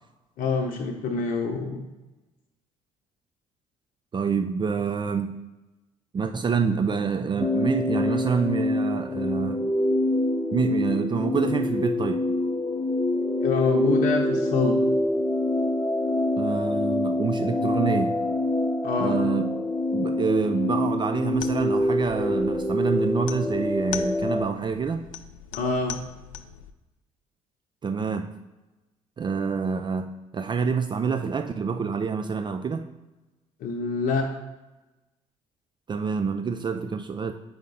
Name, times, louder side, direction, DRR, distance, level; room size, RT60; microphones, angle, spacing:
voice 1, 0.4-1.8 13.4-14.8 18.8-19.2 25.5-26.0 33.6-34.3, left 4 dB, 55° left, 3 dB, 0.9 m, -26 dB
voice 2, 4.1-5.4 6.1-9.6 10.5-12.2 16.4-18.2 19.0-19.5 19.9-25.1 27.8-28.3 29.2-32.9 35.9-37.3, right 5 dB, 30° right, 7 dB, 0.5 m, -27 dB
sound 1, 7.4-24.4, left 1 dB, 10° left, 0.8 m, -25 dB
sound 2, 21.3-26.7, left 9 dB, 80° left, 0.4 m, -41 dB
7.4 x 5.0 x 4.0 m, 1.1 s
figure-of-eight pair, 50°, 16 cm